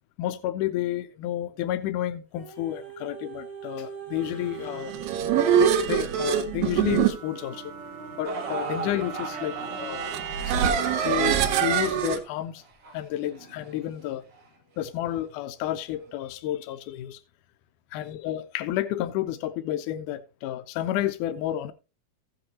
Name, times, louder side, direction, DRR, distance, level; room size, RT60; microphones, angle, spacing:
voice 1, 0.2-4.9 5.5-7.7 8.1-10.1 10.4-12.6 12.9-14.2 14.8-17.2 17.9-21.7, left 13 dB, 85° left, 1.8 m, -31 dB
sound 1, 2.4-11.5 12.1-12.2, right 4 dB, ahead, 3.5 m, -43 dB
sound 2, 4.7-12.2, right 9 dB, 75° right, 2.7 m, -25 dB
sound 3, 8.2-14.5 15.2-15.3 16.0-16.1, right 4 dB, 45° right, 2.3 m, -38 dB
15.5 x 7.8 x 2.8 m
omnidirectional pair, 4.2 m